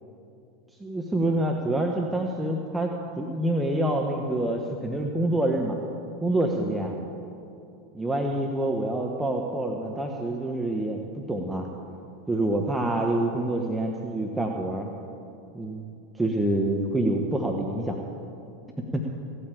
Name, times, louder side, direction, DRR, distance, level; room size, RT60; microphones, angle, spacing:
voice 1, 0.8-2.9 3.2-5.8 6.2-7.0 7.9-11.7 12.3-14.9 15.5-15.8 16.2-18.0 18.9-19.0, right 1 dB, 10° right, 1 dB, 1.3 m, -26 dB
16.5 x 8.8 x 8.5 m, 2.6 s
hypercardioid pair, 85°, 0 cm